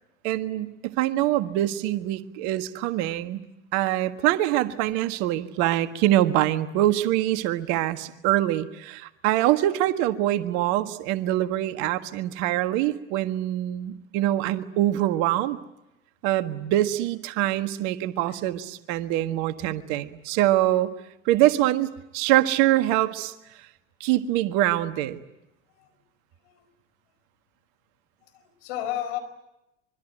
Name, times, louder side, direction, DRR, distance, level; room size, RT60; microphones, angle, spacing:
voice 1, 0.2-3.4 3.7-15.6 16.2-20.9 21.2-23.3 24.0-25.2, right 14 dB, 55° right, 10 dB, 1.6 m, -24 dB
voice 2, 28.2-29.2, left 11 dB, 65° left, 8 dB, 4.8 m, -33 dB
25.5 x 23.5 x 9.1 m, 0.90 s
figure-of-eight pair, 70°, 34 cm